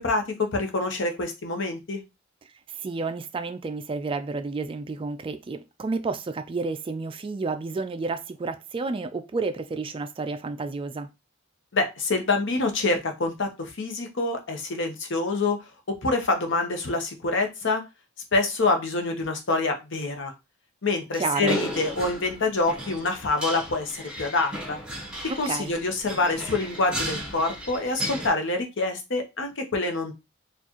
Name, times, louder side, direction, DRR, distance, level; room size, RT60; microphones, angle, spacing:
voice 1, 0.0-2.0 11.7-15.6 16.0-17.8 18.3-20.3 20.8-24.8 25.4-30.1, left 3 dB, 60° left, 0.9 m, -26 dB
voice 2, 2.7-11.1 21.1-21.6 25.3-25.7, right 4 dB, 25° right, 0.3 m, -31 dB
sound 1, 21.4-28.3, right 1 dB, 5° right, 1.1 m, -35 dB
4.5 x 2.4 x 2.9 m
head